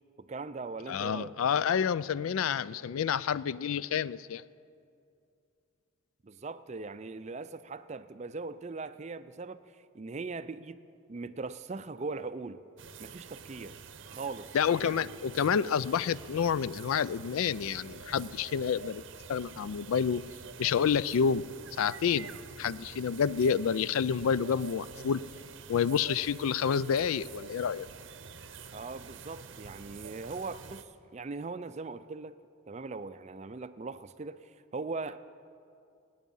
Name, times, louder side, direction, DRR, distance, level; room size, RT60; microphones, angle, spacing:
voice 1, 0.2-1.3 6.2-9.6 9.9-10.8 11.1-12.6 13.0-13.7 14.1-14.5 28.7-32.3 32.7-35.2, right 3 dB, 30° right, 13 dB, 0.4 m, -40 dB
voice 2, 0.9-4.4 14.5-19.0 19.3-20.2 20.6-21.5 21.8-22.3 22.6-25.2 25.7-27.9, left 7 dB, 80° left, 18 dB, 0.4 m, -29 dB
sound 1, 12.8-30.8, right 5 dB, 60° right, 0.7 m, -47 dB
24.5 x 9.5 x 5.5 m, 2.5 s
head